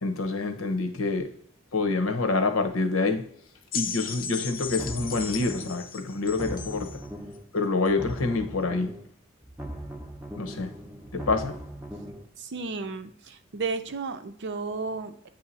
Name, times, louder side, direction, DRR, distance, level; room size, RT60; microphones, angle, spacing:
voice 1, 0.0-1.3 1.7-3.2 3.7-7.0 7.5-8.9 10.4-10.7 11.1-11.6, left 3 dB, 85° left, 0.9 m, -27 dB
sound 1, 3.7-7.0 7.9-8.0, left 7 dB, 45° left, 0.6 m, -36 dB
sound 2, 4.7-5.9 6.2-7.5 7.8-9.1 9.4-12.3, right 1 dB, 10° right, 0.6 m, -39 dB
voice 2, 12.4-15.3, right 4 dB, 60° right, 0.6 m, -33 dB
8.2 x 2.9 x 4.0 m
head